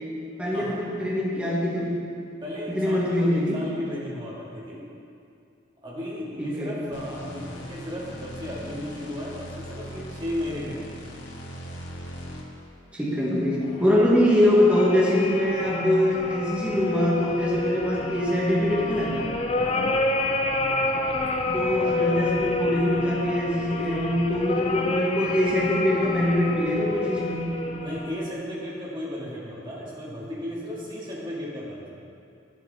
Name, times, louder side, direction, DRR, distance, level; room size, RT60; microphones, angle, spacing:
voice 1, 0.4-2.0 2.7-3.6 6.4-6.8 12.9-19.3 21.5-27.7, left 1 dB, 5° right, -7 dB, 1.4 m, -23 dB
voice 2, 2.4-4.8 5.8-10.9 13.6-13.8 19.6-19.9 27.8-31.9, equal, 25° right, -7 dB, 2.1 m, -35 dB
sound 1, 6.9-12.7, equal, 75° left, 1.2 m, -40 dB
sound 2, 13.9-28.3, left 2 dB, 30° left, 0.5 m, -29 dB
10.0 x 7.6 x 4.1 m, 2.5 s
head